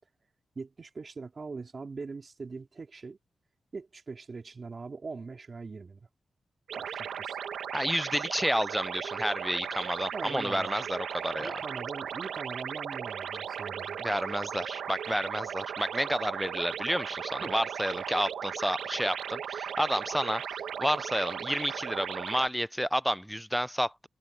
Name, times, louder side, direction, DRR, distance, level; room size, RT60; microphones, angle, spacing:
voice 1, 0.5-3.2 3.7-6.1 6.7-7.4 10.1-10.8 11.4-14.0 17.4-17.5, right 4 dB, 50° right, 2.9 m, -42 dB
sound 1, 6.7-22.5, right 8 dB, 90° right, 1.2 m, -37 dB
voice 2, 7.7-11.6 14.0-20.4 20.8-24.1, equal, ahead, 0.5 m, -30 dB
cardioid pair, 65°, 0 cm